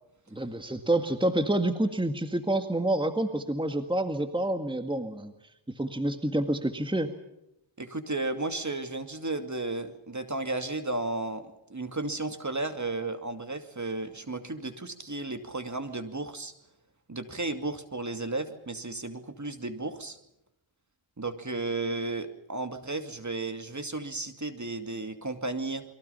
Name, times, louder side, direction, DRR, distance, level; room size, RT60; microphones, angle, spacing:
voice 1, 0.3-5.3 5.7-7.1, right 1 dB, 10° right, 7 dB, 1.9 m, -28 dB
voice 2, 7.8-16.5 17.1-20.2 21.2-25.8, right 2 dB, 35° right, 8 dB, 2.5 m, -34 dB
29.5 x 23.0 x 5.7 m, 0.82 s
wide cardioid pair, 65°, 49 cm